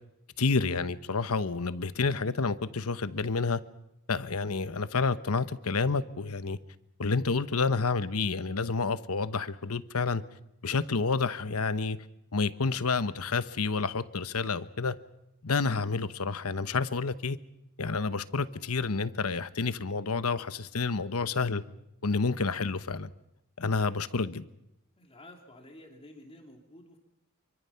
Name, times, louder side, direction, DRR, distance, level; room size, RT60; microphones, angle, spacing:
voice 1, 0.4-3.6 4.1-6.6 7.0-10.2 10.6-12.0 12.3-14.9 15.4-17.4 17.8-21.6 22.0-23.1 23.6-24.4, left 4 dB, 75° left, 13 dB, 1.0 m, -29 dB
voice 2, 25.0-27.0, left 1 dB, 25° left, 2 dB, 2.9 m, -51 dB
26.5 x 24.5 x 5.8 m, 0.85 s
head